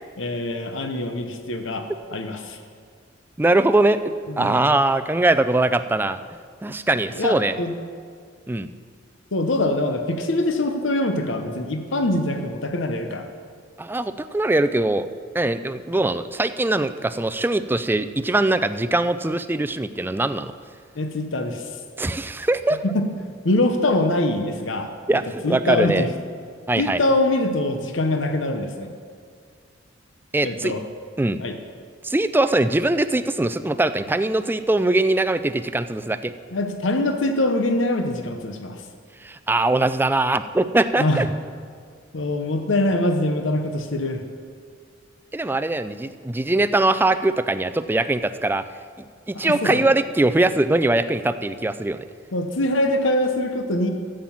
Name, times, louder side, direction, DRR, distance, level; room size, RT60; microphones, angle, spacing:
voice 1, 0.2-2.6 4.3-4.7 7.2-7.7 9.3-13.3 21.0-21.7 22.8-23.1 23.4-24.9 25.4-26.1 26.8-28.9 30.4-30.8 31.4-31.6 36.5-38.8 41.0-41.3 42.1-44.2 49.3-49.9 52.3-53.9, left 1 dB, 75° left, 6 dB, 0.9 m, -23 dB
voice 2, 3.4-6.2 6.6-7.6 8.5-8.7 13.8-15.0 15.3-20.5 22.0-22.8 25.1-26.0 26.7-27.0 30.3-30.7 31.2-31.4 32.0-36.3 39.2-41.3 45.3-48.6 49.3-52.0, right 2 dB, 10° right, 11 dB, 0.4 m, -21 dB
11.0 x 7.7 x 7.3 m, 2.1 s
head